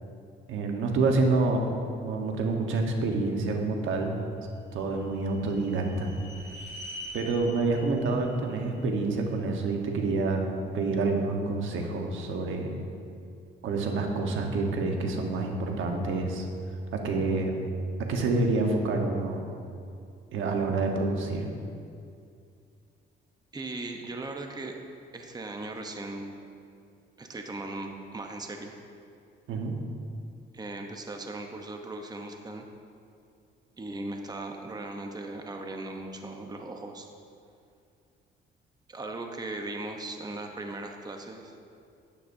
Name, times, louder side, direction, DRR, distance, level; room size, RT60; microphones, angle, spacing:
voice 1, 0.5-1.7 2.0-4.2 4.7-6.1 7.1-10.4 10.7-12.8 13.6-16.5 16.9-17.5 18.1-19.5 20.3-21.5 29.5-29.7, right 3 dB, 80° right, 2 dB, 1.2 m, -27 dB
sound 1, 4.5-9.6, left 1 dB, 55° right, 2.3 m, -45 dB
voice 2, 23.5-24.8 25.1-26.4 27.2-28.7 30.5-32.6 33.8-37.1 38.9-41.6, right 2 dB, 20° right, 3 dB, 0.9 m, -38 dB
11.0 x 10.0 x 2.7 m, 2.4 s
cardioid pair, 90°, 20 cm